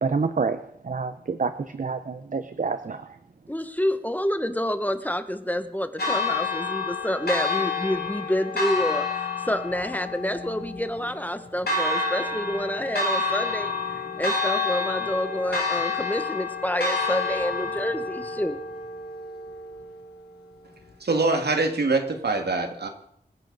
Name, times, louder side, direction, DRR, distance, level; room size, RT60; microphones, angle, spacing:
voice 1, 0.0-3.2, right 4 dB, 50° right, 10 dB, 0.8 m, -28 dB
voice 2, 3.5-13.7 14.2-18.6, equal, 10° left, 10 dB, 1.0 m, -28 dB
Church bell, 6.0-20.0, left 4 dB, 75° left, 3.1 m, -29 dB
voice 3, 21.0-22.9, right 3 dB, 80° right, 5 dB, 2.0 m, -24 dB
25.0 x 10.0 x 4.0 m, 0.70 s
wide cardioid pair, 95°, 17 cm